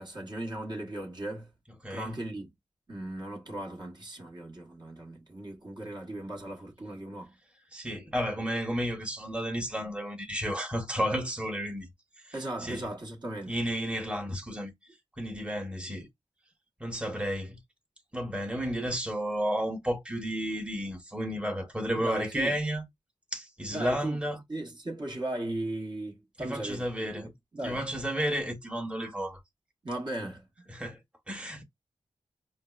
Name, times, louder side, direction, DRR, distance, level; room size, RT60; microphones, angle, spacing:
voice 1, 0.0-1.5 1.9-2.5 2.9-7.3 12.3-13.6 21.9-22.6 23.7-24.2 24.5-26.9 27.1-27.8 29.8-30.7, right 1 dB, 40° right, 1.1 m, -37 dB
voice 2, 1.8-2.1 7.7-11.9 12.2-12.3 12.6-12.8 13.5-14.7 15.2-16.1 16.8-17.6 18.1-22.9 23.3-24.4 26.4-27.3 27.6-29.4 30.7-31.0 31.3-31.6, equal, 10° right, 1.1 m, -32 dB
4.5 x 2.2 x 2.3 m
cardioid pair, 50°, 12 cm